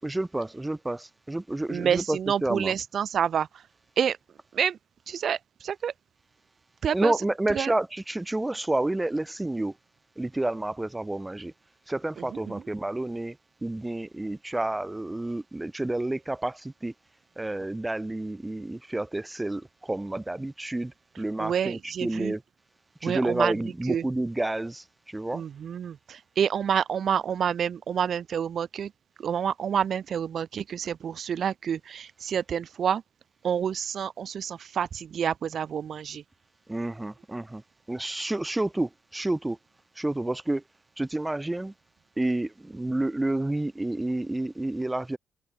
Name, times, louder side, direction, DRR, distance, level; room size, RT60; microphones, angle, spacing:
voice 1, 0.0-2.7 6.9-9.8 10.2-11.5 11.9-16.9 17.4-22.4 23.0-25.4 36.7-37.6 37.9-39.6 39.9-40.6 41.0-41.7 42.2-45.2, right 2 dB, 15° right, 4.7 m, -30 dB
voice 2, 1.7-3.6 4.0-4.2 4.5-4.8 5.1-5.9 6.8-7.1 7.5-7.7 12.2-12.4 21.4-22.3 23.0-23.5 23.9-24.0 25.3-28.9 29.2-33.0 33.4-36.2, right 8 dB, 55° right, 3.6 m, -28 dB
cardioid pair, 90°, 0 cm